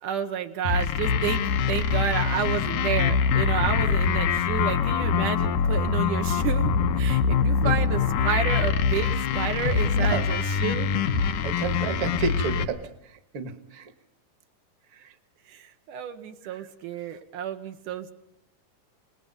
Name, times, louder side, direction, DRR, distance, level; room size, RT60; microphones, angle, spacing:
voice 1, 0.0-10.9 15.5-18.1, right 8 dB, 75° right, 6 dB, 2.7 m, -31 dB
sound 1, 0.7-12.7, left 6 dB, 85° left, 2.7 m, -24 dB
voice 2, 9.9-10.3 11.4-12.9 13.3-13.9, right 5 dB, 50° right, 9 dB, 2.1 m, -30 dB
28.5 x 19.5 x 5.4 m, 0.76 s
omnidirectional pair, 3.7 m